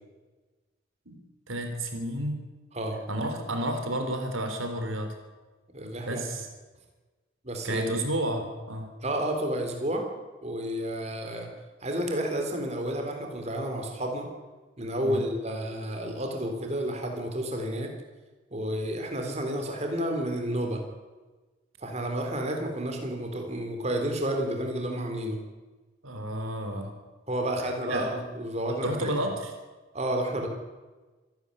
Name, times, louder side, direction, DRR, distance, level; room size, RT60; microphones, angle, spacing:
voice 1, 1.5-2.4 3.1-5.1 6.0-6.5 7.6-8.9 15.0-15.2 26.0-26.9 27.9-28.1 28.7-29.5, right 1 dB, 80° right, 6 dB, 3.6 m, -31 dB
voice 2, 5.7-6.2 7.4-7.8 9.0-10.1 10.4-11.5 11.8-14.3 14.8-17.9 18.5-20.8 21.8-25.4 27.3-29.1 29.9-30.5, right 1 dB, 35° right, 3 dB, 3.8 m, -31 dB
26.5 x 12.0 x 9.9 m, 1.3 s
head